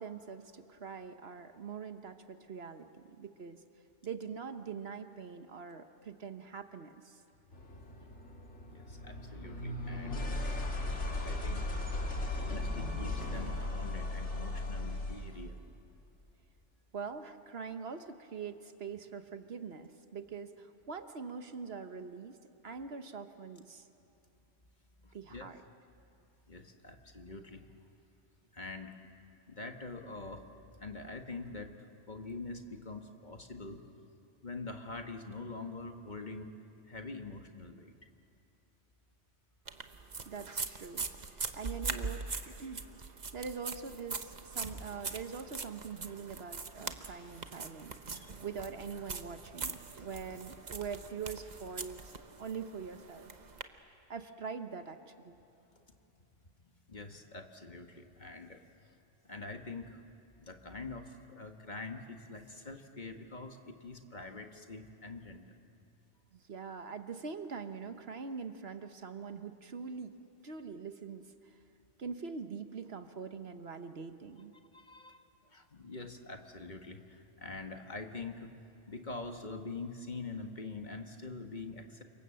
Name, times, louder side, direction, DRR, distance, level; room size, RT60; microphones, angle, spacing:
voice 1, 0.0-3.6 4.0-7.2 16.9-22.4 22.6-23.9 25.1-25.6 40.3-41.3 41.5-52.0 52.4-53.3 54.1-55.3 66.3-70.1 70.4-71.6 72.0-74.5, right 5 dB, 60° right, 8 dB, 1.3 m, -43 dB
sound 1, 7.5-15.4, left 2 dB, 70° left, 2.9 m, -37 dB
voice 2, 8.7-10.6 11.0-11.7 12.2-15.7 25.0-25.5 26.5-27.7 28.5-28.9 29.5-30.4 30.8-33.8 34.4-36.5 36.9-37.9 48.1-48.3 55.7-55.9 56.4-58.9 59.2-60.0 60.4-65.4 74.7-78.5 78.8-82.0, left 3 dB, 40° left, 5 dB, 1.6 m, -45 dB
sound 2, 39.7-53.6, right 4 dB, 40° right, 1.1 m, -42 dB
29.0 x 25.5 x 7.7 m, 2.8 s
omnidirectional pair, 1.2 m